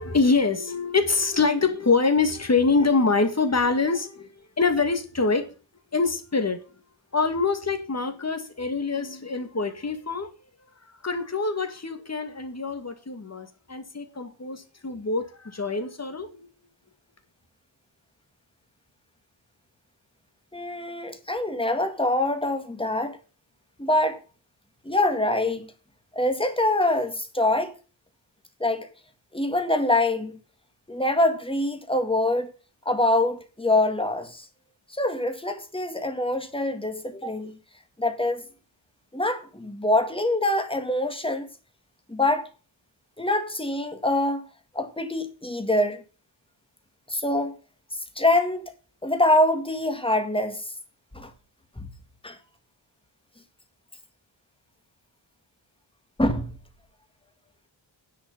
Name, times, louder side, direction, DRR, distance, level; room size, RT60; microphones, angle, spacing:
voice 1, 0.0-4.3 4.6-5.5 5.9-6.7 7.1-10.3 11.0-16.5, left 4 dB, 35° left, 2.2 m, -25 dB
voice 2, 20.5-23.2 23.8-24.2 24.9-25.7 26.1-27.7 28.6-28.9 29.3-30.4 30.9-32.5 32.9-34.5 34.9-37.6 38.0-38.5 39.1-41.5 42.1-42.5 43.2-44.5 44.7-46.0 47.1-47.6 48.2-48.7 49.0-50.6 51.1-51.3 51.8-51.9 52.2-52.4 56.2-56.5, left 1 dB, 10° left, 2.0 m, -24 dB
10.0 x 6.5 x 6.7 m
wide cardioid pair, 110°, 47 cm